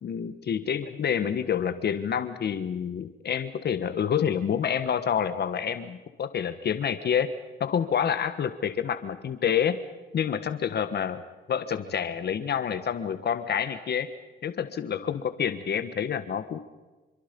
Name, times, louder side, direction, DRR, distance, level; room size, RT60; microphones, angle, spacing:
voice 1, 0.0-7.3 7.6-9.8 10.1-11.2 11.5-14.1 14.4-16.6, left 8 dB, 55° left, 11 dB, 1.5 m, -28 dB
27.5 x 25.0 x 5.4 m, 1.2 s
cardioid pair, 90°, 20 cm